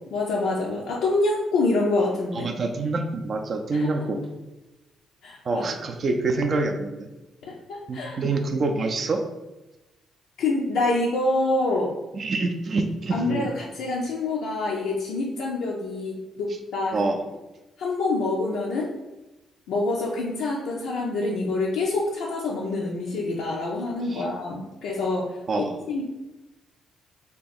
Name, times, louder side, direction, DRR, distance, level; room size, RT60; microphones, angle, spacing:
voice 1, 0.1-2.5 3.7-4.0 5.2-5.6 7.4-8.2 10.4-11.9 13.1-17.0 17.8-18.9 19.7-25.4 25.9-26.0, left 2 dB, 85° left, -3 dB, 0.4 m, -26 dB
voice 2, 2.3-4.2 5.4-7.1 7.9-9.2 12.1-13.5 16.9-17.2 24.1-24.3 25.5-25.8, right 3 dB, 45° right, 4 dB, 0.4 m, -26 dB
2.9 x 2.3 x 4.2 m, 1.0 s
cardioid pair, 90°, 0 cm